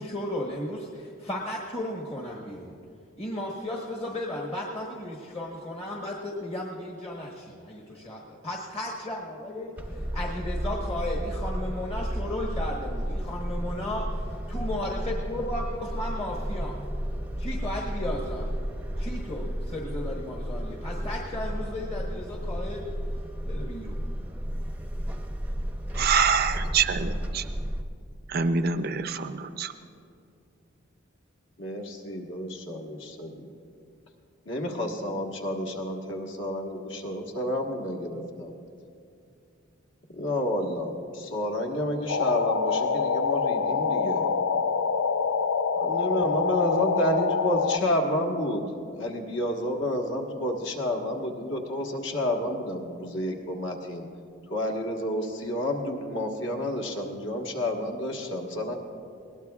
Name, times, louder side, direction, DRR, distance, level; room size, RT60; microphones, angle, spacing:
voice 1, 0.0-2.8 3.2-16.8 17.4-18.5 19.0-22.9 23.5-24.0, left 1 dB, 30° left, -2 dB, 1.2 m, -35 dB
sound 1, 9.8-27.8, equal, 10° right, 0.6 m, -32 dB
voice 2, 25.9-27.4 28.3-29.7, right 5 dB, 50° right, 9 dB, 0.5 m, -25 dB
voice 3, 31.6-33.5 34.5-38.5 40.1-44.2 45.8-48.6 48.9-54.1 54.5-58.8, left 1 dB, 60° left, 2 dB, 1.4 m, -30 dB
sound 2, 42.1-47.8, left 5 dB, 85° left, 0.5 m, -25 dB
20.5 x 18.5 x 2.4 m, 2.4 s
head